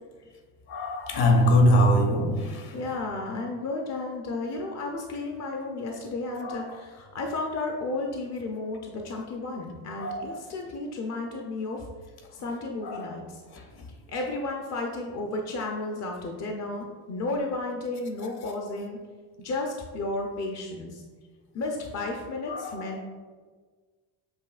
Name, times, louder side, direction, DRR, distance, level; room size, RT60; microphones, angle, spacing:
voice 1, 0.7-2.7 6.4-6.6 10.0-10.3 12.8-13.1 13.5-13.6 22.5-22.8, equal, 50° left, 0.9 m, -23 dB
voice 2, 2.7-11.9 12.3-13.4 14.1-19.0 19.4-21.0 21.5-23.0, left 2 dB, 35° left, 0.6 m, -33 dB
7.3 x 2.7 x 2.4 m
supercardioid pair, 90°, 49 cm